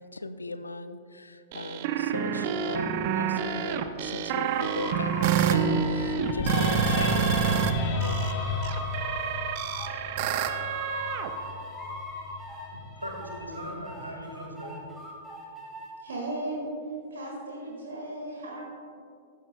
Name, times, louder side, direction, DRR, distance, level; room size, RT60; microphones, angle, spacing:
voice 1, 0.0-8.6, left 2 dB, 75° left, 12 dB, 0.5 m, -39 dB
sound 1, 1.5-7.7 8.0-11.3, right 8 dB, 45° right, 0.6 m, -28 dB
sound 2, 4.3-10.0 10.4-12.7 13.0-15.9, equal, 10° right, 2.6 m, -40 dB
sound 3, 5.7-13.8, left 3 dB, 35° left, 1.6 m, -33 dB
voice 2, 12.7-14.7, equal, 90° right, 1 dB, 1.8 m, -39 dB
voice 3, 16.0-16.7 17.1-18.6, right 1 dB, 60° right, -2 dB, 1.7 m, -35 dB
14.5 x 13.0 x 2.2 m, 2.5 s
figure-of-eight pair, 100°, 0 cm